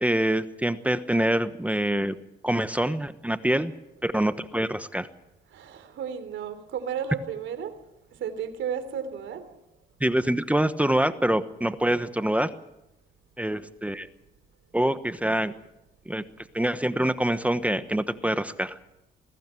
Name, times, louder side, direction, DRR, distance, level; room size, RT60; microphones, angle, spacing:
voice 1, 0.0-2.1 2.4-3.7 4.0-5.1 10.0-12.5 13.4-14.1 14.7-15.5 16.1-16.2 16.5-18.8, right 1 dB, 5° right, 12 dB, 1.1 m, -25 dB
voice 2, 5.5-7.8 8.1-9.5, right 7 dB, 75° right, 10 dB, 3.4 m, -33 dB
21.5 x 15.5 x 9.0 m, 0.88 s
cardioid pair, 90°, 20 cm